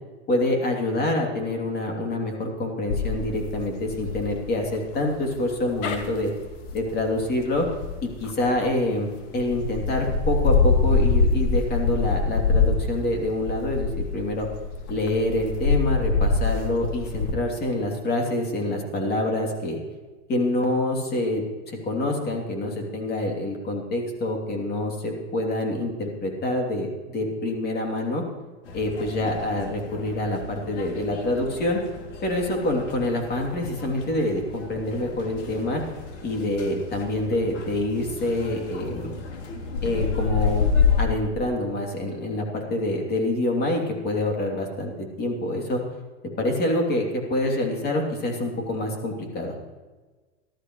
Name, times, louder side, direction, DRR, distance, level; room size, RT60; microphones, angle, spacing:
voice 1, 0.3-6.3 6.7-7.7 8.0-14.5 14.9-19.8 20.3-28.2 28.7-31.8 32.2-35.8 36.2-39.1 39.8-40.7 41.0-45.8 46.4-49.5, left 1 dB, 25° left, 1 dB, 3.0 m, -26 dB
sound 1, 2.9-8.9 9.4-17.3, left 4 dB, 50° left, 2.0 m, -25 dB
sound 2, 28.6-41.0, left 6 dB, 85° left, 2.8 m, -30 dB
18.5 x 13.0 x 3.2 m, 1.3 s
supercardioid pair, 130°, 35 cm